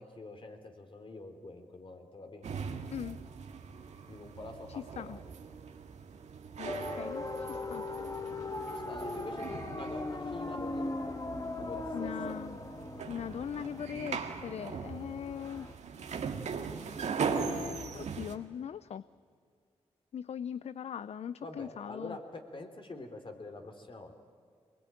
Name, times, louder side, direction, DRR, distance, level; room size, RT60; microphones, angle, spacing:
voice 1, 0.0-2.4 4.1-5.3 8.9-10.9 11.6-12.4 21.4-24.1, left 2 dB, 45° left, 5 dB, 3.4 m, -46 dB
sound 1, 2.4-18.3, right 6 dB, 75° right, 1.8 m, -40 dB
voice 2, 6.6-7.9 11.9-12.6 13.1-15.7 17.2-19.0 20.1-22.2, left 8 dB, 65° left, 16 dB, 0.5 m, -40 dB
sound 2, 6.6-15.7, left 2 dB, 30° left, 1.6 m, -39 dB
23.5 x 20.5 x 9.0 m, 2.3 s
cardioid pair, 50°, 12 cm